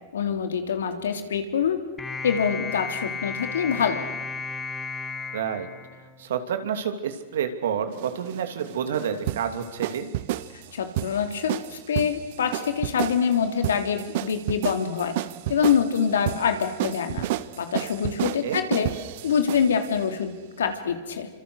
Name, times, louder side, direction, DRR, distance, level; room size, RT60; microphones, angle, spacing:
voice 1, 0.1-1.8 2.2-4.0 10.5-15.1 15.5-17.3 17.6-18.9 19.2-21.3, left 7 dB, 85° left, 6 dB, 3.2 m, -25 dB
sound 1, 2.0-6.5, left 4 dB, 10° left, 2.1 m, -34 dB
voice 2, 5.3-5.7 6.2-10.1 18.4-18.6, right 8 dB, 75° right, 7 dB, 3.0 m, -29 dB
sound 2, 7.9-19.9, right 15 dB, 60° right, 0.9 m, -31 dB
28.5 x 25.5 x 6.5 m, 1.3 s
hypercardioid pair, 125°, 0 cm